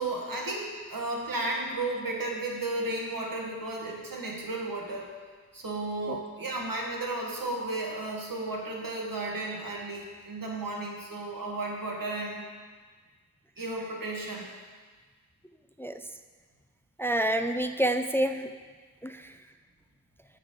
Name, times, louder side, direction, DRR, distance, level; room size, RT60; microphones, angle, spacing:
voice 1, 0.0-5.1 5.5-12.5 13.6-14.5, right 2 dB, 85° right, -1 dB, 1.6 m, -33 dB
voice 2, 17.0-18.5 19.0-19.3, right 1 dB, 5° left, 7 dB, 0.4 m, -28 dB
13.0 x 6.5 x 3.9 m, 1.5 s
wide cardioid pair, 65°, 33 cm